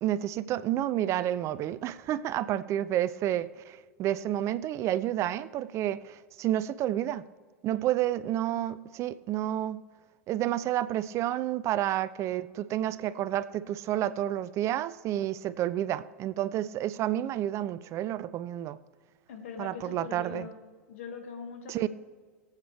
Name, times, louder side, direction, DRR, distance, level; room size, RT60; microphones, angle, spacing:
voice 1, 0.0-7.2 7.6-9.8 10.3-18.8 19.6-20.5 21.7-21.9, right 12 dB, 40° right, 16 dB, 0.5 m, -30 dB
voice 2, 19.3-20.6 20.9-21.9, left 5 dB, 70° left, 4 dB, 2.2 m, -41 dB
23.0 x 8.1 x 3.4 m, 1.5 s
hypercardioid pair, 100°, 8 cm